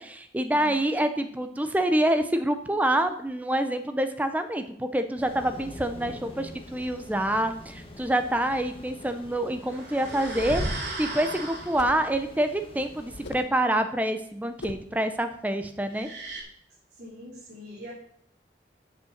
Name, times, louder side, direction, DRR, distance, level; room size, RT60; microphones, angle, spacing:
voice 1, 0.0-16.1, right 1 dB, 10° right, 8 dB, 0.5 m, -27 dB
sound 1, 5.2-13.4, left 1 dB, 30° left, 1.2 m, -46 dB
sound 2, 9.6-12.0 15.9-16.4, right 1 dB, 75° right, 2.5 m, -34 dB
sound 3, 10.3-10.7 11.8-12.1 13.1-13.6 14.6-14.9, left 2 dB, 80° left, 0.7 m, -41 dB
voice 2, 16.9-17.9, left 1 dB, 55° right, -11 dB, 3.2 m, -43 dB
7.3 x 5.5 x 6.5 m, 0.69 s
head